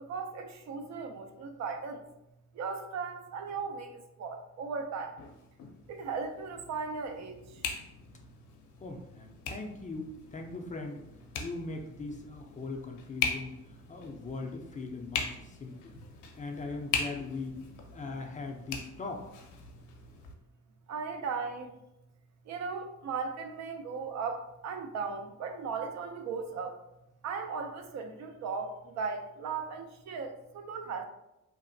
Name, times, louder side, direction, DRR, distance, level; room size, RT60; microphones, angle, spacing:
voice 1, 0.1-2.0 2.6-3.9 4.2-5.1 5.9-7.4 20.9-21.7 22.5-26.7 27.2-31.1, right 5 dB, 65° right, 5 dB, 0.4 m, -37 dB
sound 1, 5.2-20.3, left 5 dB, 75° left, 0.5 m, -41 dB
voice 2, 8.8-11.0 11.4-16.0 16.4-17.6 17.9-19.2, left 3 dB, 25° left, 2 dB, 0.4 m, -40 dB
2.9 x 2.1 x 2.6 m, 0.88 s
cardioid pair, 90°, 30 cm